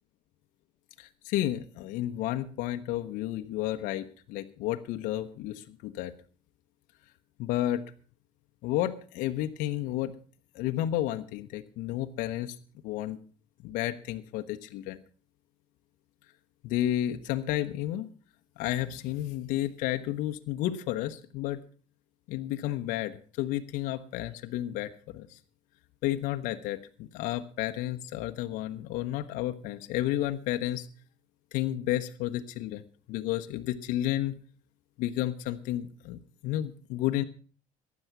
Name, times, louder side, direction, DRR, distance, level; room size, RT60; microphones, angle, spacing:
voice 1, 1.0-6.1 7.4-7.8 8.6-10.1 10.5-12.5 12.8-13.2 13.6-15.0 16.6-18.1 18.6-21.6 22.3-25.4 26.0-30.9 31.5-32.8 33.1-34.3 35.0-37.2, left 13 dB, 65° left, 7 dB, 1.1 m, -31 dB
15.0 x 10.5 x 6.0 m, 0.41 s
cardioid pair, 130°, 14 cm